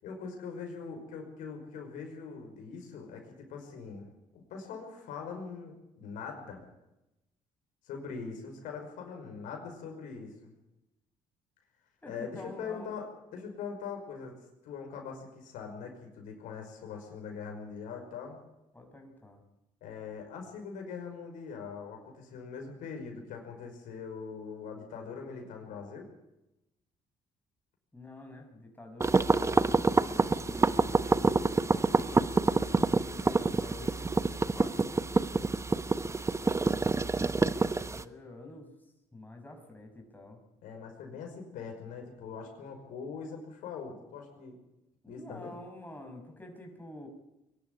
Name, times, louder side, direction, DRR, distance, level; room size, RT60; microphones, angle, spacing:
voice 1, 0.0-6.6 7.9-10.5 12.1-14.3 14.6-18.4 19.8-26.1 40.6-44.6 45.1-45.5, left 5 dB, 80° left, 3 dB, 5.6 m, -42 dB
voice 2, 12.0-12.9 18.7-19.4 27.9-35.0 37.5-40.4 45.0-47.1, left 2 dB, 15° left, 3 dB, 6.1 m, -48 dB
sound 1, 29.0-38.0, right 3 dB, 20° right, 1.0 m, -27 dB
22.5 x 12.0 x 9.8 m, 0.93 s
supercardioid pair, 80°, 13 cm